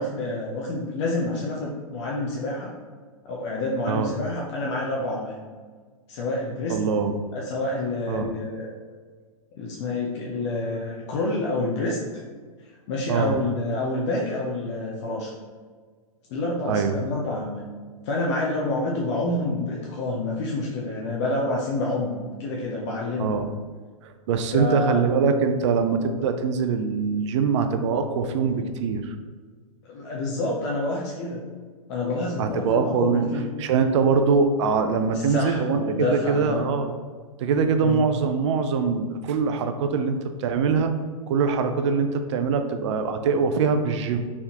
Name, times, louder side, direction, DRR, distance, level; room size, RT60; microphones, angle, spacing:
voice 1, 0.0-2.7 3.2-5.4 6.1-6.8 7.3-8.7 9.5-12.0 12.9-15.3 16.3-17.7 18.0-23.4 24.5-25.0 29.9-31.4 31.9-33.5 35.1-36.7 37.8-38.0, left 2 dB, 50° left, -3 dB, 0.7 m, -28 dB
voice 2, 6.7-7.1 8.1-8.3 13.1-13.4 16.7-16.9 23.2-23.5 24.0-29.1 32.4-33.3 33.6-36.9 37.4-40.9 41.3-44.2, right 5 dB, 55° right, 7 dB, 0.5 m, -23 dB
4.3 x 3.5 x 2.9 m, 1.6 s
hypercardioid pair, 115°, 19 cm